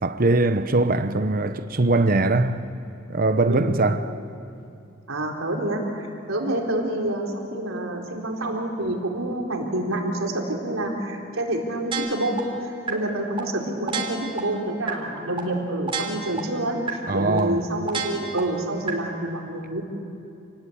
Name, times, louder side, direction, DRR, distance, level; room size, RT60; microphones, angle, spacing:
voice 1, 0.0-2.7 3.1-4.0 17.1-17.6, right 2 dB, 45° right, 0.9 m, -21 dB
voice 2, 5.1-19.8, right 1 dB, 85° right, 4.1 m, -28 dB
sound 1, 11.9-12.4 12.9-13.0 13.4-13.5 13.9-14.4 14.9-15.0 15.4-15.5 15.9-16.4 16.9-17.0 17.4-17.5 17.9-18.4 18.9-19.0, right 5 dB, 25° right, 3.7 m, -28 dB
29.0 x 19.5 x 8.7 m
head